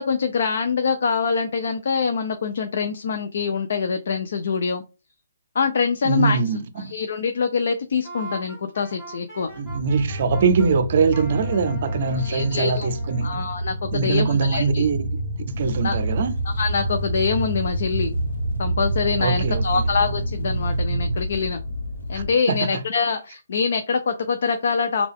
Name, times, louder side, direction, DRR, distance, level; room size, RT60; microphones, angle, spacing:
voice 1, 0.0-4.8 5.5-6.4 6.8-9.5 12.2-12.9 13.2-14.8 15.8-16.0 16.5-18.1 18.6-21.6 22.1-25.1, left 5 dB, 60° left, 0.5 m, -24 dB
voice 2, 6.0-6.9 9.6-13.4 13.9-15.1 15.5-16.4 19.2-19.8 22.1-22.8, right 5 dB, 50° right, 0.5 m, -23 dB
Wind instrument woodwind instrument, 8.0-10.7 11.1-13.5, right 2 dB, 25° left, 1.8 m, -40 dB
sound 1, 9.5-21.2, right 2 dB, 10° right, 1.4 m, -28 dB
sound 2, 15.5-22.3, left 2 dB, 80° left, 0.9 m, -32 dB
3.5 x 2.3 x 3.5 m
hypercardioid pair, 155°, 0 cm